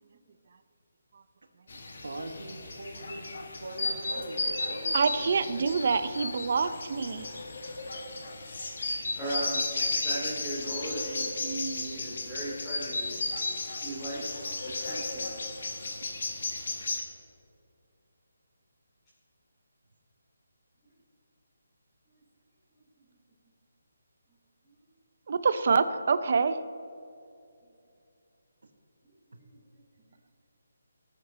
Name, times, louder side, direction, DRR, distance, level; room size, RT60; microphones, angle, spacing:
sound 1, 1.7-17.0, left 3 dB, 60° left, 1.8 m, -34 dB
voice 1, 2.0-6.1, right 2 dB, 90° right, 6 dB, 1.5 m, -42 dB
voice 2, 4.9-7.3 25.3-26.6, right 5 dB, 45° right, 12 dB, 0.6 m, -26 dB
voice 3, 9.1-13.1 13.8-15.4 29.4-29.5, right 1 dB, 10° left, -12 dB, 2.9 m, -37 dB
19.0 x 8.1 x 4.1 m, 2.6 s
hypercardioid pair, 170°, 0 cm